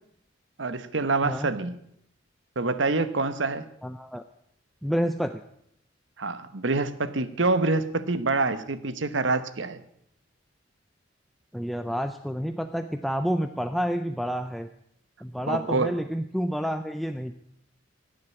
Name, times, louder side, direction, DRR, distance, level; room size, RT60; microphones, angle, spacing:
voice 1, 0.6-1.8 2.6-3.7 6.2-9.8 15.5-15.9, right 3 dB, 70° right, 13 dB, 1.0 m, -26 dB
voice 2, 3.8-4.2 4.8-5.4 11.5-14.7 15.2-17.4, equal, ahead, 8 dB, 0.5 m, -29 dB
16.0 x 7.7 x 8.8 m, 0.72 s
head